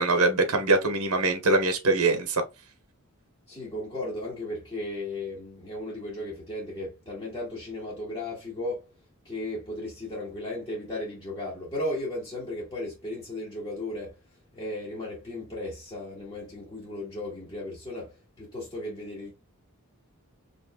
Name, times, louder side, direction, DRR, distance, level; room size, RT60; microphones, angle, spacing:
voice 1, 0.0-2.4, right 2 dB, 80° right, 1.0 m, -23 dB
voice 2, 3.5-8.9 9.2-14.2 14.5-19.3, left 1 dB, 20° left, 1.7 m, -35 dB
5.2 x 3.1 x 2.2 m
head